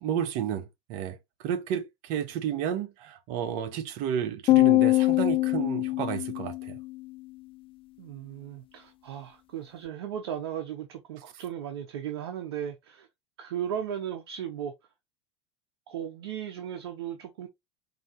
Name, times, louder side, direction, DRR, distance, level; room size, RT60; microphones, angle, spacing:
voice 1, 0.0-6.8, right 9 dB, 65° right, 1.1 m, -32 dB
sound 1, 4.5-6.9, left 18 dB, 40° left, 0.5 m, -23 dB
voice 2, 8.0-13.1 13.4-14.7 15.9-17.5, right 9 dB, 80° right, 0.8 m, -36 dB
5.2 x 2.9 x 3.0 m
hypercardioid pair, 100°, 14 cm